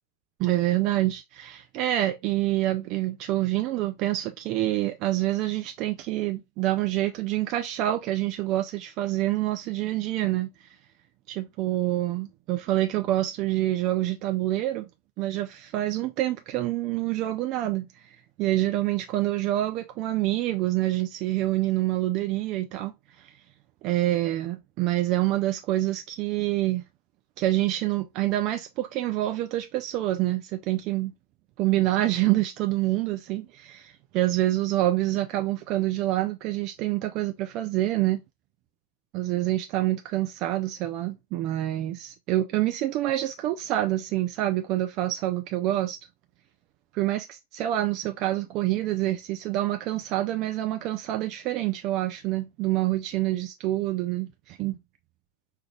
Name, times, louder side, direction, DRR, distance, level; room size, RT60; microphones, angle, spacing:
voice 1, 0.4-10.5 11.3-14.8 15.2-17.9 18.4-22.9 23.8-26.8 27.4-31.1 31.6-38.2 39.1-46.0 46.9-47.2 47.5-54.8, right 15 dB, 40° right, 0.4 m, -26 dB
5.0 x 2.3 x 3.2 m
figure-of-eight pair, 90°, 0 cm